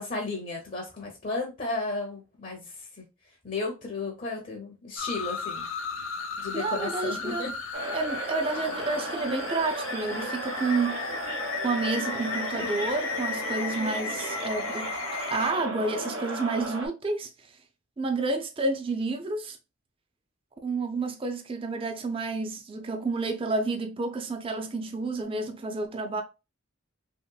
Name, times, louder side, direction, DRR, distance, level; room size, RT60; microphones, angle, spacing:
voice 1, 0.0-3.0 3.4-5.7 6.4-7.5 12.5-12.7, left 3 dB, 40° left, 0.6 m, -34 dB
sound 1, 5.0-15.5, left 5 dB, 80° left, 0.6 m, -35 dB
voice 2, 6.5-7.4 7.9-11.2 11.6-15.0 15.3-17.3 18.0-19.6 20.6-26.2, right 3 dB, 25° right, 0.4 m, -30 dB
sound 2, 7.7-16.9, right 2 dB, 80° right, 0.7 m, -35 dB
3.0 x 2.9 x 2.2 m
head